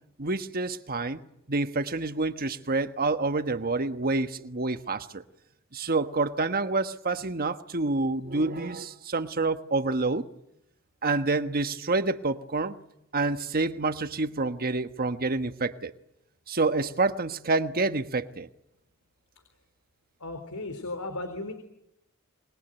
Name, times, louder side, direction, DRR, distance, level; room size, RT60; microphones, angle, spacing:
voice 1, 0.2-1.2 1.5-5.2 5.7-10.3 11.0-12.7 13.1-15.9 16.5-18.5, right 3 dB, 45° right, 1.3 m, -28 dB
voice 2, 20.2-21.5, left 2 dB, 90° left, 4.0 m, -35 dB
27.0 x 22.0 x 9.2 m
head